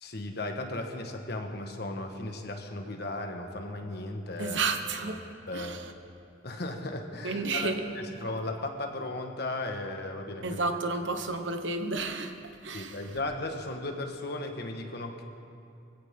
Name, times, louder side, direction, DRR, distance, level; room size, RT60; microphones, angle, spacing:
voice 1, 0.0-4.6 5.0-5.1 5.5-6.0 6.4-7.7 8.2-10.6 12.7-15.2, left 2 dB, 60° left, 4 dB, 1.5 m, -36 dB
voice 2, 4.4-5.2 5.5-5.9 7.2-8.2 10.4-13.2, right 3 dB, 75° right, 7 dB, 1.2 m, -32 dB
23.5 x 16.5 x 3.7 m, 2.5 s
head